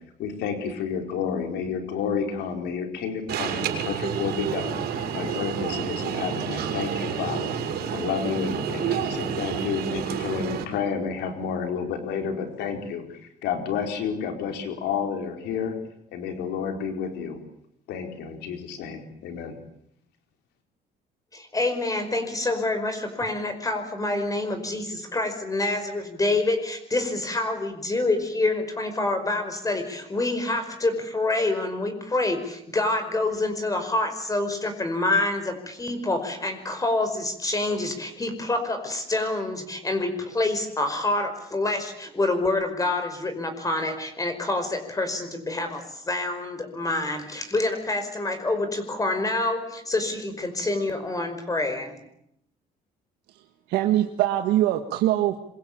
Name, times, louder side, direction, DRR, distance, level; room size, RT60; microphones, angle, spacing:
voice 1, 0.2-7.5 7.9-15.7 16.1-17.4 17.9-19.6, left 6 dB, 85° left, 5 dB, 4.8 m, -30 dB
Alarm, 3.3-10.6, right 7 dB, 70° right, 6.0 m, -29 dB
voice 2, 21.3-52.0, left 2 dB, 20° left, 7 dB, 5.2 m, -27 dB
voice 3, 53.3-55.4, right 13 dB, 90° right, 5 dB, 1.8 m, -23 dB
25.5 x 23.5 x 8.8 m, 0.75 s
cardioid pair, 110°, 17 cm